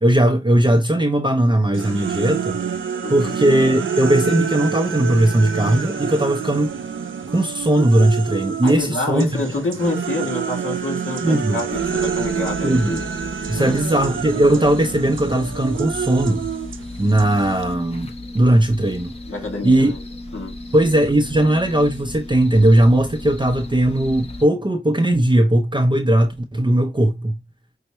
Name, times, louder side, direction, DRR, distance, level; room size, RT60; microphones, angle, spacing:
voice 1, 0.0-2.6 3.1-6.8 7.3-9.4 11.2-11.6 12.6-13.0 13.5-16.5 17.0-19.1 19.6-19.9 20.7-27.4, right 1 dB, 25° right, 0.6 m, -18 dB
sound 1, 1.7-8.8 9.2-17.7, right 7 dB, 75° right, 0.5 m, -27 dB
voice 2, 3.0-3.4 8.6-13.0 13.5-13.8 19.3-20.0 20.3-20.5, left 2 dB, 85° left, 1.9 m, -27 dB
sound 2, 11.7-24.4, left 1 dB, 30° left, 0.9 m, -35 dB
5.4 x 2.2 x 3.0 m
wide cardioid pair, 70°, 21 cm